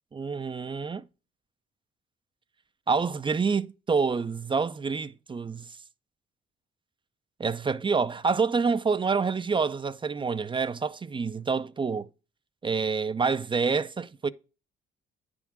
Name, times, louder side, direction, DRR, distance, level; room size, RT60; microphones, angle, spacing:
voice 1, 0.1-1.1 2.9-5.7 7.4-12.1 12.6-14.3, right 5 dB, 25° right, 0.4 m, -27 dB
9.8 x 3.6 x 6.0 m
cardioid pair, 90°, 20 cm